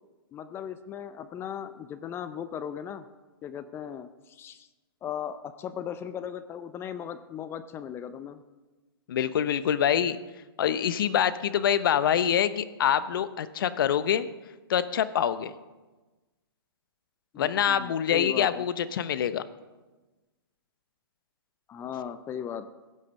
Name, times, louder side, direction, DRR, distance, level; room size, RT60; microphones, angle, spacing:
voice 1, 0.3-3.1 3.4-4.7 5.0-8.4 17.3-18.7 21.7-22.7, left 8 dB, 20° left, 12 dB, 0.5 m, -37 dB
voice 2, 9.1-10.2 10.6-14.3 14.7-15.5 17.4-19.4, left 9 dB, 60° left, 14 dB, 0.9 m, -25 dB
16.5 x 7.6 x 6.3 m, 1.2 s
hypercardioid pair, 130°, 13 cm